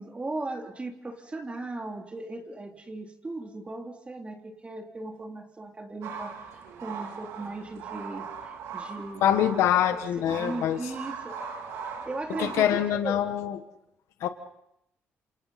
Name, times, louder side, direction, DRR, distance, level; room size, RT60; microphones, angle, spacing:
voice 1, 0.0-9.6 9.9-11.3 12.1-13.3, right 2 dB, 25° right, 2 dB, 3.3 m, -38 dB
sound 1, 6.0-12.9, right 6 dB, 90° right, 3.1 m, -39 dB
voice 2, 9.2-10.8 12.4-13.6 14.2-14.3, left 10 dB, 85° left, 8 dB, 1.4 m, -24 dB
28.5 x 27.0 x 4.2 m, 0.77 s
cardioid pair, 85°, 5 cm